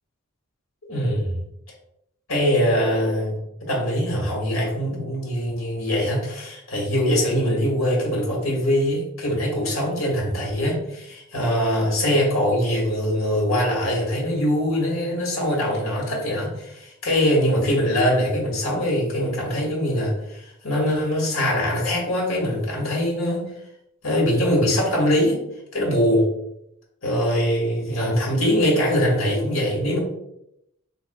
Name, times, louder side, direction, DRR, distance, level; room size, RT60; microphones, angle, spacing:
voice 1, 0.9-1.4 2.3-23.5 24.0-25.4 25.7-26.3 27.0-30.0, equal, 70° left, -2 dB, 1.3 m, -22 dB
3.4 x 3.4 x 2.5 m, 0.79 s
head